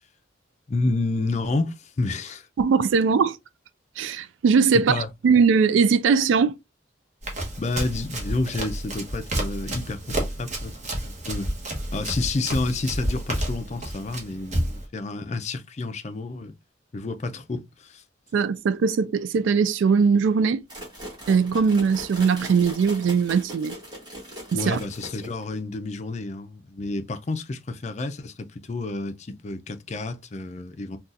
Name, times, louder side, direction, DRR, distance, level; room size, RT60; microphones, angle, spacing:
voice 1, 0.7-2.5 4.7-5.1 7.6-10.7 11.0-11.5 11.9-16.5 16.9-18.0 24.5-31.0, left 2 dB, 35° left, 0.4 m, -29 dB
voice 2, 2.6-3.4 4.0-6.6 18.3-20.6 21.3-23.8 24.5-24.8, right 5 dB, 85° right, 0.3 m, -20 dB
Run, 7.2-14.9, right 1 dB, 40° right, 1.0 m, -30 dB
sound 1, 20.7-25.6, equal, 25° right, 1.5 m, -40 dB
3.9 x 2.3 x 2.4 m
head